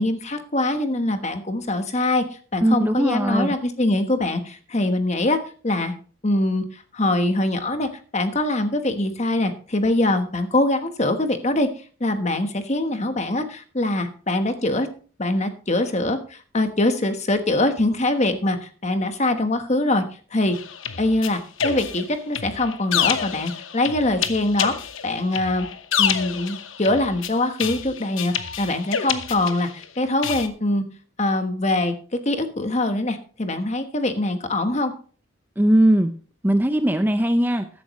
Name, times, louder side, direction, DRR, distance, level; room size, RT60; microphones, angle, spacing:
voice 1, 0.0-2.2 2.5-5.4 5.6-6.0 6.2-11.7 12.0-14.9 15.2-20.0 20.3-20.6 21.0-24.7 25.0-25.7 26.0-30.8 31.2-34.9, left 2 dB, 35° left, 8 dB, 1.2 m, -23 dB
voice 2, 2.6-3.6 35.6-36.1 36.4-37.7, right 1 dB, 10° right, 8 dB, 0.6 m, -19 dB
sound 1, 20.5-29.8 30.2-30.5, left 8 dB, 75° left, 1.0 m, -28 dB
14.5 x 10.5 x 3.1 m, 0.40 s
head